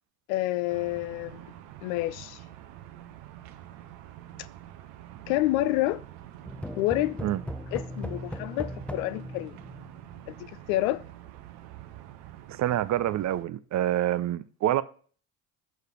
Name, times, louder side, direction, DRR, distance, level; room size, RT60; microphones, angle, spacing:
voice 1, 0.3-1.4 1.8-2.4 5.3-6.0 6.8-7.2 7.7-9.6 10.3-11.0, left 16 dB, 60° left, 0.6 m, -28 dB
sound 1, 0.7-13.5, right 12 dB, 60° right, 1.1 m, -47 dB
sound 2, 6.4-10.2, equal, 5° left, 0.6 m, -38 dB
voice 2, 12.5-14.8, right 13 dB, 35° right, 0.6 m, -27 dB
8.1 x 6.6 x 4.8 m
figure-of-eight pair, 55°, 47 cm